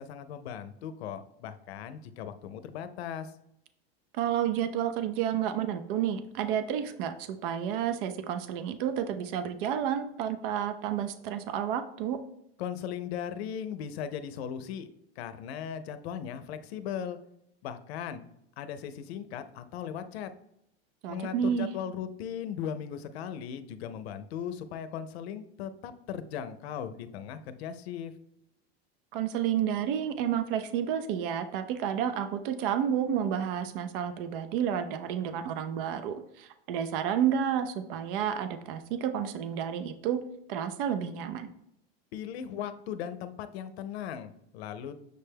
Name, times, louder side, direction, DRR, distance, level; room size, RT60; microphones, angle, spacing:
voice 1, 0.0-3.3 12.6-14.9 15.2-17.2 17.6-18.2 18.6-20.3 21.1-28.1 42.1-44.9, left 8 dB, 90° left, 11 dB, 0.6 m, -38 dB
voice 2, 4.2-12.2 21.0-21.7 29.1-40.2 40.5-41.5, right 9 dB, 60° right, 10 dB, 0.5 m, -30 dB
6.5 x 2.2 x 3.3 m, 0.79 s
supercardioid pair, 155°, 31 cm